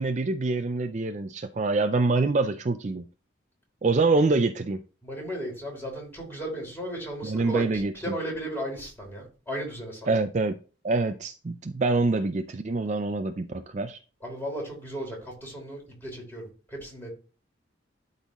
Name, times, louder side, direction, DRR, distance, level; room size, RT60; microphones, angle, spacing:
voice 1, 0.0-3.0 3.8-4.8 7.2-8.1 10.1-10.6 10.8-14.0, right 3 dB, 40° right, 0.4 m, -25 dB
voice 2, 5.0-10.1 14.2-17.1, right 1 dB, 10° left, 3.3 m, -35 dB
12.0 x 4.0 x 3.0 m
head